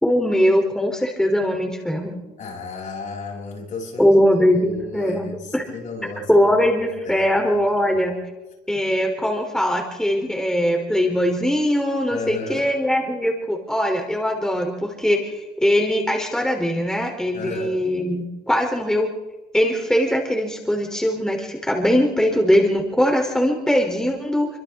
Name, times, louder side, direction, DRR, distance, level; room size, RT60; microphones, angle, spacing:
voice 1, 0.0-2.2 4.0-5.6 6.3-8.2 8.7-19.1 19.5-24.5, equal, 5° left, 1 dB, 3.3 m, -21 dB
voice 2, 2.4-4.2 4.5-6.6 7.0-7.3 7.9-8.0 12.1-12.7 17.3-17.8, left 3 dB, 50° left, 0 dB, 7.7 m, -33 dB
30.0 x 24.0 x 3.6 m, 1.1 s
cardioid pair, 110°, 17 cm